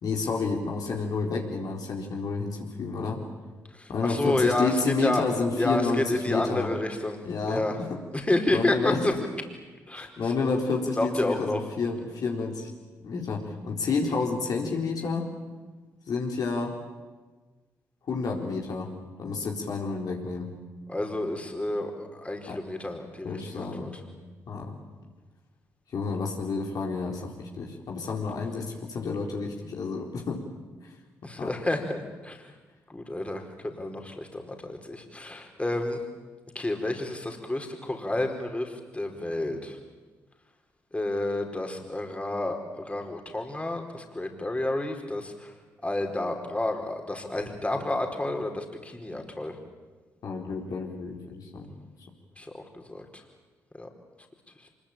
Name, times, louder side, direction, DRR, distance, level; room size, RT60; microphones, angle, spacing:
voice 1, 0.0-3.2 3.9-6.7 7.2-8.0 8.5-9.2 9.9-12.7 13.0-15.3 16.1-16.8 18.1-18.9 19.2-20.5 22.5-22.6 23.2-23.9 24.5-24.7 25.9-30.4 31.4-31.5 50.2-51.7, left 4 dB, 60° left, 0 dB, 4.0 m, -30 dB
voice 2, 3.7-5.2 5.6-7.8 8.1-9.1 9.9-10.3 11.0-11.6 20.9-24.0 31.2-32.4 32.9-36.0 36.5-39.8 40.9-45.5 45.8-49.6 52.4-53.2 53.7-53.9 54.6-54.7, left 1 dB, 15° left, 3 dB, 4.6 m, -30 dB
25.0 x 22.0 x 8.9 m, 1.3 s
hypercardioid pair, 45°, 7 cm